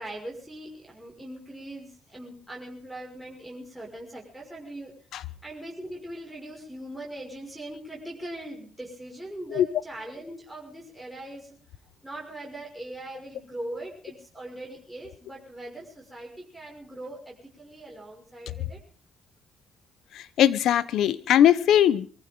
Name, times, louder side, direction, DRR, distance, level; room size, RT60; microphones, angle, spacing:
voice 1, 0.0-4.9 5.4-11.6 12.0-18.8, right 1 dB, ahead, 6.0 m, -40 dB
voice 2, 20.1-22.1, left 10 dB, 80° left, 1.0 m, -20 dB
23.0 x 15.0 x 3.9 m
cardioid pair, 90°, 0 cm